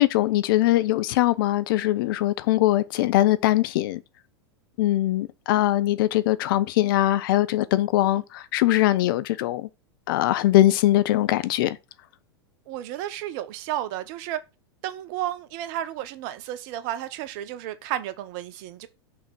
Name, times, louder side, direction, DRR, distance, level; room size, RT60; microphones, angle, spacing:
voice 1, 0.0-4.0 4.8-9.7 10.1-11.8, left 15 dB, 55° left, 0.6 m, -21 dB
voice 2, 12.7-14.4 14.8-18.9, right 12 dB, 50° right, 0.8 m, -32 dB
6.1 x 3.6 x 5.9 m
figure-of-eight pair, 95°, 14 cm